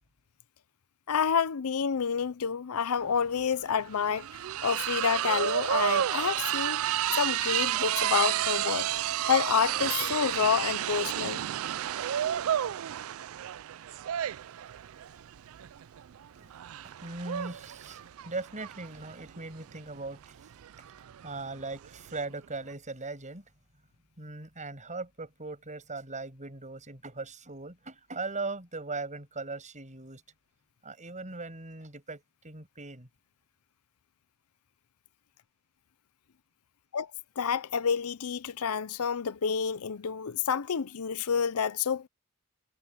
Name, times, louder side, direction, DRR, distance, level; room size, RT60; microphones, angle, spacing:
voice 1, 1.1-4.3 4.6-6.8 7.2-8.9 9.2-11.5 36.9-37.1 37.4-42.1, left 7 dB, 85° left, 0.6 m, -28 dB
sound 1, 3.0-3.1 3.4-22.2, right 11 dB, 70° right, 0.4 m, -31 dB
voice 2, 16.4-20.5 20.8-23.5 24.2-30.2 30.8-33.1, right 3 dB, 35° right, 7.1 m, -39 dB
head